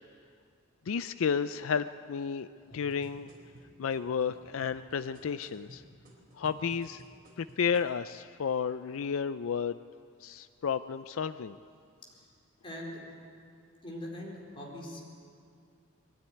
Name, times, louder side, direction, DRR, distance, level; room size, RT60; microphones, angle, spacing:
voice 1, 0.9-2.5 2.7-3.3 3.8-5.8 6.3-7.0 7.4-9.8 10.2-11.6, left 6 dB, 75° left, 12 dB, 0.4 m, -32 dB
sound 1, 2.6-7.9 8.6-8.7, equal, 45° right, 3.8 m, -55 dB
voice 2, 12.6-13.0 13.8-15.0, left 1 dB, 25° left, -3 dB, 4.4 m, -42 dB
21.5 x 13.0 x 9.7 m, 2.3 s
head